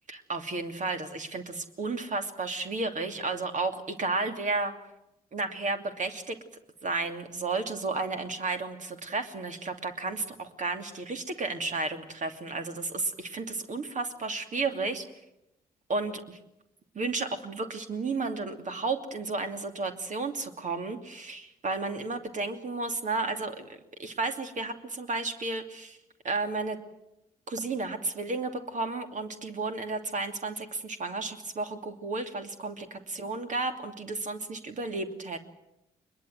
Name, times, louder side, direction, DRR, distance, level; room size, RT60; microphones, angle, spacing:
voice 1, 0.1-4.7 5.3-6.4 6.8-15.0 15.9-16.4 16.9-26.0 26.2-26.8 27.5-35.4, right 3 dB, 40° right, 6 dB, 2.7 m, -33 dB
23.0 x 21.5 x 7.9 m, 0.87 s
figure-of-eight pair, 45°, 19 cm